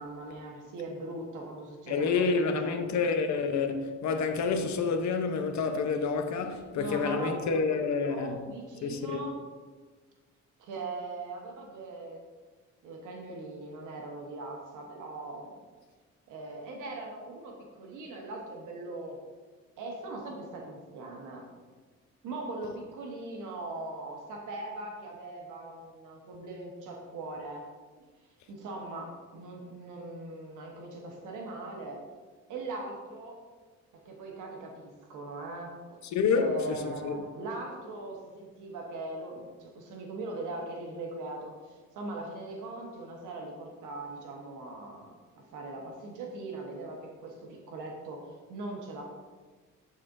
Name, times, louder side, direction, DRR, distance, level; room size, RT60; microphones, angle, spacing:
voice 1, 0.0-3.0 6.5-7.5 8.1-9.4 10.6-12.2 12.8-15.5 16.3-19.2 19.8-21.5 22.2-27.7 28.5-32.0 32.5-33.4 34.0-36.0 36.3-49.1, right 2 dB, 80° right, 1.2 m, -40 dB
voice 2, 1.9-8.4 8.8-9.3 36.1-37.2, left 5 dB, 65° left, 0.8 m, -28 dB
11.0 x 4.3 x 2.6 m
cardioid pair, 90°, 30 cm